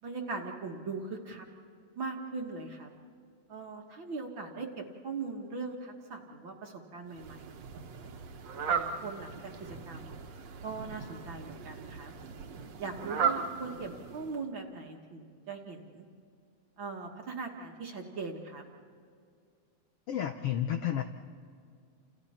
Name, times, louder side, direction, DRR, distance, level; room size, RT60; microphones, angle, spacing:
voice 1, 0.0-1.5 2.0-2.9 3.5-7.5 7.7-8.1 8.7-10.1 10.6-12.1 12.8-16.1 16.8-18.6, right 4 dB, 50° right, 1 dB, 1.8 m, -40 dB
Fowl, 7.1-14.5, right 6 dB, 65° right, 2.2 m, -37 dB
voice 2, 20.1-21.0, left 10 dB, 75° left, 7 dB, 1.3 m, -31 dB
29.5 x 29.0 x 4.3 m, 2.3 s
omnidirectional pair, 3.6 m